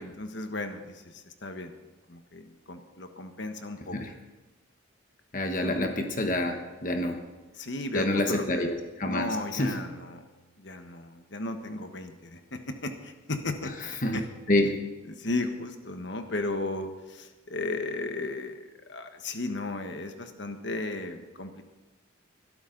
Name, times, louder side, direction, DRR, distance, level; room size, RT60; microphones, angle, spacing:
voice 1, 0.0-1.7 2.1-4.0 5.6-5.9 7.6-8.7 9.1-10.3 10.6-13.7 14.1-14.2 15.1-18.6 18.9-21.6, left 2 dB, 60° left, 6 dB, 1.4 m, -35 dB
voice 2, 5.3-7.2 7.9-9.7 13.8-14.2 14.5-14.8, left 1 dB, 40° left, 4 dB, 1.3 m, -28 dB
21.5 x 12.5 x 4.0 m, 1.2 s
head